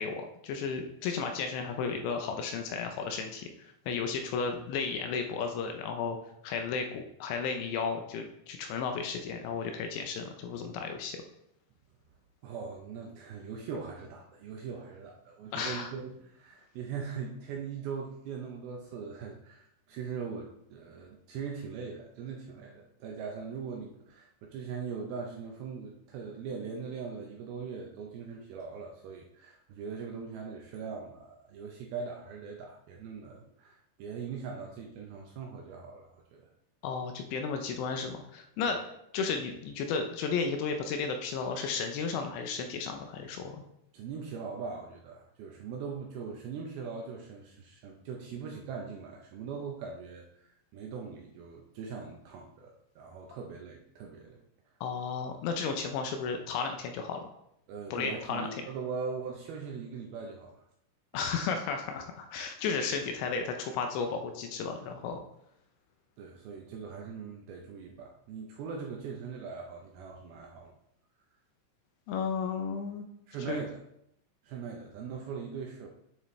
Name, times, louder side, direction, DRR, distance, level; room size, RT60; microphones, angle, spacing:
voice 1, 0.0-3.5 3.9-6.2 6.4-11.2 15.5-15.9 36.8-38.8 39.1-43.6 54.8-57.3 57.9-58.5 61.1-65.2 72.1-73.1 73.5-73.6, left 5 dB, 80° left, 5 dB, 2.8 m, -33 dB
voice 2, 12.4-36.4 38.6-38.7 43.9-54.4 57.7-60.6 66.2-70.7 73.3-73.8 74.4-75.9, right 5 dB, 80° right, 0 dB, 2.2 m, -41 dB
9.0 x 6.7 x 3.2 m, 0.77 s
omnidirectional pair, 5.3 m